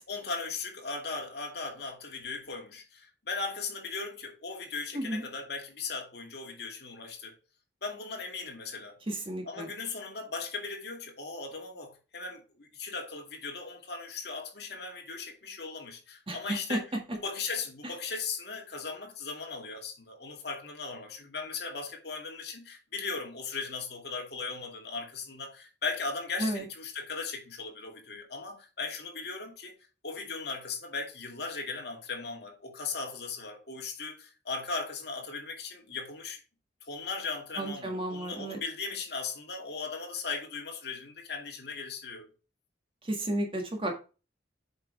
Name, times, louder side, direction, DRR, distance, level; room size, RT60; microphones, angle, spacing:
voice 1, 0.1-7.3 7.8-9.0 9.4-16.8 17.1-29.7 30.0-36.4 36.8-42.3, left 4 dB, 60° left, 2.4 m, -38 dB
voice 2, 9.1-9.7 16.3-16.8 26.4-26.6 37.6-38.6 43.0-43.9, right 1 dB, 30° right, 1.8 m, -32 dB
7.9 x 5.4 x 3.4 m
head